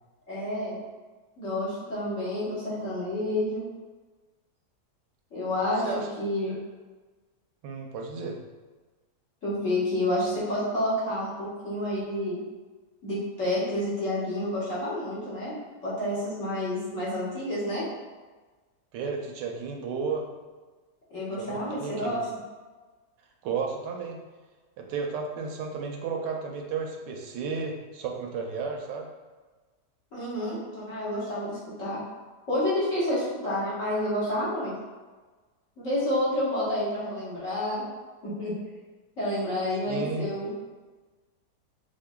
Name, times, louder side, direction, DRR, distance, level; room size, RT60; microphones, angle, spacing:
voice 1, 0.3-0.8 1.4-3.6 5.3-5.9 6.2-6.6 9.4-12.4 13.0-15.5 15.8-17.8 21.1-22.2 30.1-32.0 32.5-34.7 35.8-37.8 38.2-38.5 39.2-40.5, left 1 dB, 50° left, -9 dB, 1.6 m, -29 dB
voice 2, 7.6-8.4 18.9-20.3 21.4-22.2 23.4-24.2 24.8-29.1 39.9-40.3, right 5 dB, 85° right, 1 dB, 1.2 m, -33 dB
5.1 x 2.6 x 2.2 m, 1.3 s
omnidirectional pair, 1.8 m